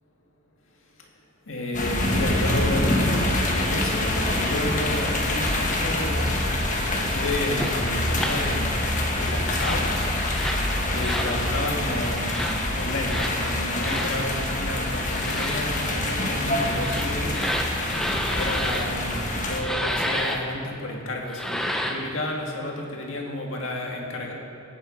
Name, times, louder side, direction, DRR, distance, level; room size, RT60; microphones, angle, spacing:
voice 1, 1.5-6.3 6.9-8.8 9.1-9.9 10.9-12.4 12.7-17.4 18.3-24.3, left 1 dB, 65° left, 0 dB, 2.0 m, -31 dB
sound 1, 1.7-19.6, left 1 dB, 40° left, 1.4 m, -26 dB
sound 2, 7.6-7.7 8.2-8.4 9.5-9.9 10.3-10.6 11.0-11.3 12.2-12.5 13.0-13.3 13.8-14.1 15.1-15.6 16.7-18.9 19.6-20.4 21.3-22.1, equal, ahead, 0.8 m, -29 dB
17.5 x 7.9 x 5.3 m, 2.6 s
head